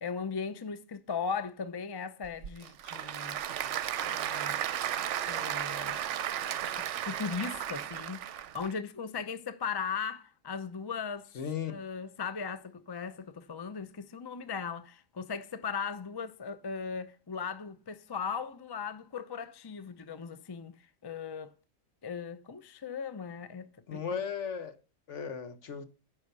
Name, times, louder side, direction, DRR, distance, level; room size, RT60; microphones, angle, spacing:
voice 1, 0.0-3.4 4.0-4.6 5.3-6.0 6.7-11.3 11.7-20.8 21.0-21.5 22.0-24.0, left 6 dB, 30° left, 0.4 m, -38 dB
Applause / Crowd, 2.2-8.7, right 10 dB, 70° right, 0.9 m, -34 dB
voice 2, 11.3-11.8 23.9-24.7 25.1-25.8, left 7 dB, 60° left, 1.4 m, -36 dB
9.9 x 5.6 x 5.4 m
omnidirectional pair, 1.4 m